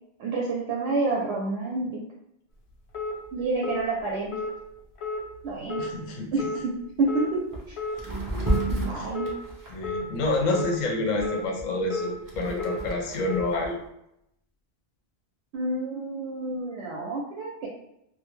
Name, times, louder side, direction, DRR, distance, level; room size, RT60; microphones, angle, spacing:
voice 1, 0.2-2.0 3.3-4.3 5.4-5.8 6.3-7.4 7.7-7.8 8.7-9.3 15.5-17.7, right 3 dB, 80° right, -2 dB, 0.8 m, -28 dB
sound 1, 2.9-3.1 3.6-3.8 4.3-4.5 5.0-5.2 5.7-5.9 6.4-6.6 7.1-7.3 7.8-8.0 8.4-8.7 9.1-9.4 9.8-10.0 10.5-10.7 11.2-11.4 11.9-12.1 12.6-12.8 13.3-13.5, left 3 dB, 90° left, 0.9 m, -31 dB
voice 2, 5.8-6.3 9.0-9.1 9.7-13.8, left 2 dB, 50° left, 1 dB, 0.6 m, -28 dB
sound 2, 7.0-7.1 7.5-7.7 8.0-10.7 11.2-13.7, right 2 dB, 30° right, 0.4 m, -31 dB
2.4 x 2.1 x 3.1 m, 0.82 s
omnidirectional pair, 1.1 m